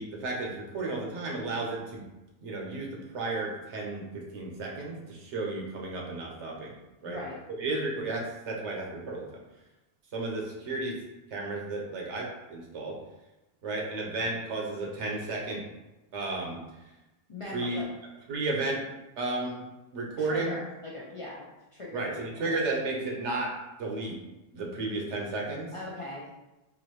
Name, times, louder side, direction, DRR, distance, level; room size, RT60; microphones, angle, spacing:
voice 1, 0.0-2.0 2.4-2.9 3.1-6.7 7.0-7.2 7.5-9.3 10.1-11.0 11.3-13.0 13.6-15.6 16.1-16.6 17.5-17.8 18.3-18.8 19.2-19.6 19.9-20.5 21.9-23.5 23.8-24.2 24.5-25.7, right 2 dB, 90° right, -1 dB, 1.1 m, -33 dB
voice 2, 7.0-7.4 17.3-17.9 20.2-22.6 25.7-26.3, left 1 dB, 45° left, -5 dB, 0.4 m, -40 dB
3.9 x 2.5 x 3.0 m, 1.0 s
omnidirectional pair, 1.2 m